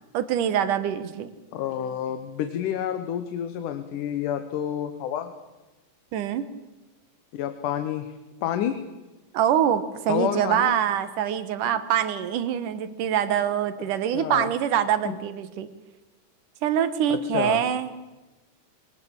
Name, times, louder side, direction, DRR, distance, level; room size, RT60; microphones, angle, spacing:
voice 1, 0.1-1.3 6.1-6.4 9.3-15.7 16.6-17.9, right 9 dB, 90° right, 12 dB, 2.9 m, -24 dB
voice 2, 1.5-5.3 7.3-8.8 10.1-10.8 14.1-14.5 15.1-15.2 17.1-17.6, left 10 dB, 80° left, 9 dB, 2.7 m, -29 dB
23.0 x 18.5 x 8.9 m, 1.1 s
omnidirectional pair, 3.6 m